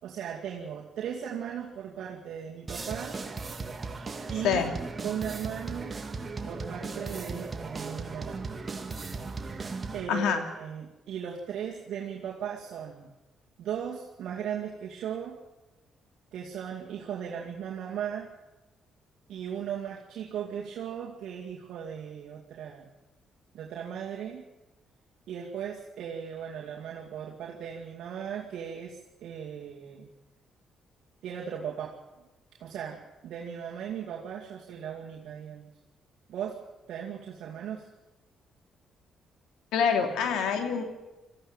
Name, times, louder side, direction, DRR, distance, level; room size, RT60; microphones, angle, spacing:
voice 1, 0.0-3.2 4.3-4.6 5.0-6.0 6.4-8.4 9.9-13.1 13.6-15.4 16.3-18.3 19.3-22.9 23.5-24.4 25.3-30.1 31.2-32.0 32.6-35.7 36.3-36.6 36.9-37.9, right 8 dB, 75° right, -3 dB, 2.4 m, -37 dB
sound 1, 2.7-10.1, right 4 dB, 30° right, 2.2 m, -37 dB
voice 2, 10.1-10.4 39.7-40.8, left 6 dB, 90° left, 5 dB, 2.7 m, -26 dB
21.0 x 15.0 x 9.1 m, 1.1 s
cardioid pair, 90°, 0 cm